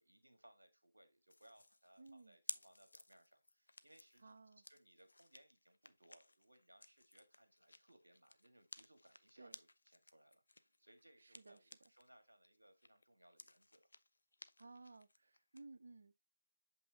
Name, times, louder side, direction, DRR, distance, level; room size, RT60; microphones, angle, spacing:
voice 1, 0.0-4.3 4.7-13.9, right 1 dB, 80° right, 1.6 m, -67 dB
sound 1, 1.3-12.1 12.4-15.6, left 2 dB, 75° left, 0.5 m, -57 dB
voice 2, 2.0-2.4 4.2-4.6 9.4-9.6 11.2-11.7 14.6-16.2, right 3 dB, 65° right, 0.5 m, -58 dB
7.2 x 5.5 x 2.7 m
figure-of-eight pair, 150°, 0 cm